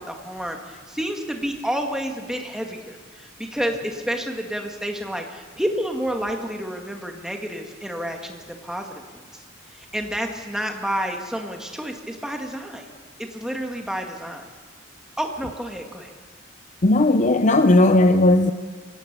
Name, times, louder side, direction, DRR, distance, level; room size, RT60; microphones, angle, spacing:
voice 1, 0.0-9.2 9.7-12.9 13.2-14.5 15.2-16.1, equal, 5° right, 2.0 m, -30 dB
voice 2, 16.8-18.5, left 2 dB, 40° left, 0.6 m, -16 dB
24.5 x 17.5 x 6.9 m
head